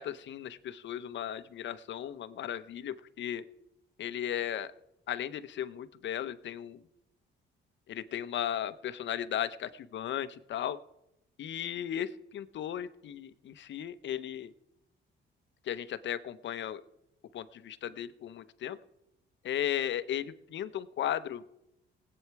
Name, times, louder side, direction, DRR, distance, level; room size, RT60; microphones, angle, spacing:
voice 1, 0.0-3.4 4.0-4.7 5.1-6.8 7.9-10.8 11.4-14.5 15.7-16.8 17.3-18.8 19.4-21.4, left 10 dB, 65° left, 14 dB, 0.9 m, -36 dB
18.0 x 8.8 x 4.7 m, 0.84 s
cardioid pair, 90°, 20 cm